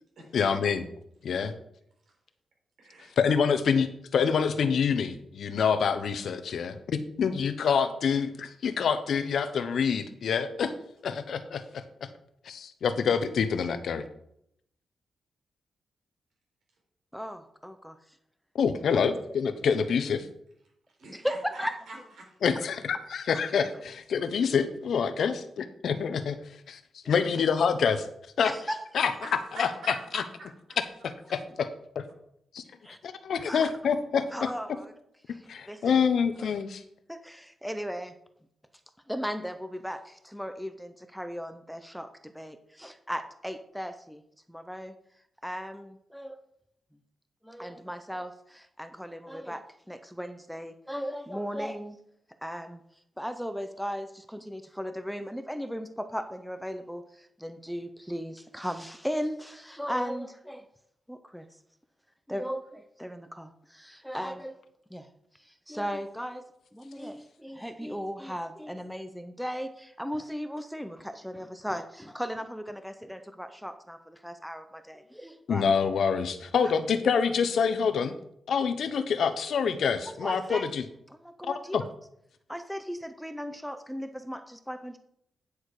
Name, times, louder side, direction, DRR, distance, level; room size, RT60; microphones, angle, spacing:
voice 1, 0.3-0.9 1.2-1.5 3.2-10.7 11.0-12.1 12.4-14.0 18.5-20.3 22.4-26.4 26.7-26.8 27.0-28.1 28.4-28.5 28.9-29.7 30.1-30.2 31.0-31.7 31.9-32.0 32.5-32.6 33.0-34.5 35.5-36.8 75.5-78.1 78.5-80.8 81.4-81.8, left 6 dB, 75° left, 10 dB, 0.9 m, -27 dB
voice 2, 2.8-3.4 21.0-22.3 29.2-30.2 30.7-30.8, right 2 dB, 75° right, -1 dB, 4.6 m, -43 dB
voice 3, 17.1-18.0 18.9-19.0 21.1-21.8 27.0-27.2 28.4-28.8 32.8-33.0 33.5-33.7 34.3-34.9 35.3-35.4 35.7-36.0 37.1-38.1 39.1-44.2 44.5-45.0 45.4-46.4 47.4-52.0 52.4-52.8 53.2-60.6 61.1-61.5 62.3-64.5 64.9-65.1 65.4-66.4 66.7-75.6 80.2-80.7 81.1-81.9 82.5-85.0, equal, ahead, 9 dB, 0.8 m, -36 dB
10.0 x 6.4 x 4.9 m, 0.74 s
cardioid pair, 95°, 0 cm